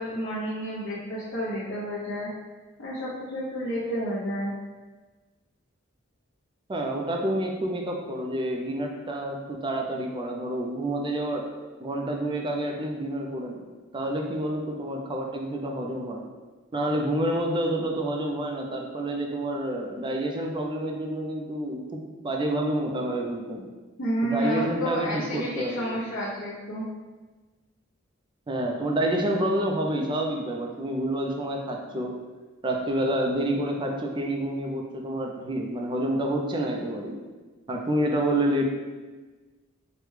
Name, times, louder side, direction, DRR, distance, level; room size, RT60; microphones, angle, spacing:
voice 1, 0.0-2.3 2.8-4.5 24.0-26.8, equal, 65° left, -9 dB, 0.8 m, -30 dB
voice 2, 6.7-11.5 11.8-13.6 13.9-16.2 16.7-23.7 24.2-26.0 28.5-32.1 32.6-37.2 37.7-38.6, right 1 dB, 25° right, 1 dB, 0.4 m, -28 dB
4.9 x 2.1 x 3.2 m, 1.3 s
head